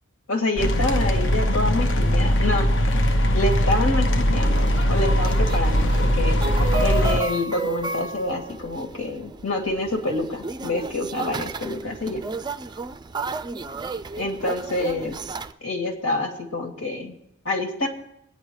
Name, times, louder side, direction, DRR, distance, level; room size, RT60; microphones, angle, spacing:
voice 1, 0.3-2.7 3.3-6.4 6.8-12.2 14.2-15.2 15.6-17.1 17.4-17.9, left 2 dB, 85° left, 1 dB, 2.6 m, -27 dB
sound 1, 0.6-7.2, equal, 60° left, 0.9 m, -20 dB
sound 2, 4.2-15.5, right 3 dB, 20° right, 0.4 m, -33 dB
22.0 x 9.6 x 3.2 m, 0.80 s
head